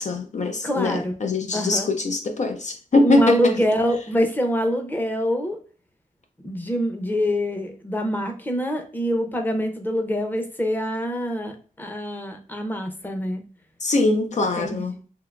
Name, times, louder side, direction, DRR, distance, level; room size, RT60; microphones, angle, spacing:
voice 1, 0.0-3.6 13.8-15.0, left 2 dB, 55° left, 0.5 m, -22 dB
voice 2, 0.6-1.1 1.5-1.9 3.0-5.6 6.4-13.4 14.6-14.9, equal, 15° left, 0.7 m, -25 dB
3.6 x 2.8 x 2.3 m
wide cardioid pair, 100°, 14 cm